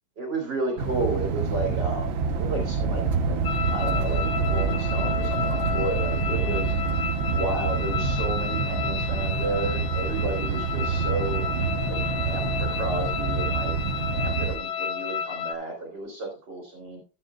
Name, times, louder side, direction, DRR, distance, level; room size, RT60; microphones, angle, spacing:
voice 1, 0.2-2.1 2.4-3.4 3.7-6.7 7.2-11.5 11.9-13.8 14.1-17.0, right 2 dB, 60° right, 1 dB, 3.2 m, -32 dB
sound 1, 0.8-14.6, right 5 dB, 85° right, 1.8 m, -27 dB
sound 2, 3.4-15.5, left 8 dB, 65° left, 1.1 m, -32 dB
12.5 x 10.0 x 2.3 m, 0.33 s
omnidirectional pair, 2.1 m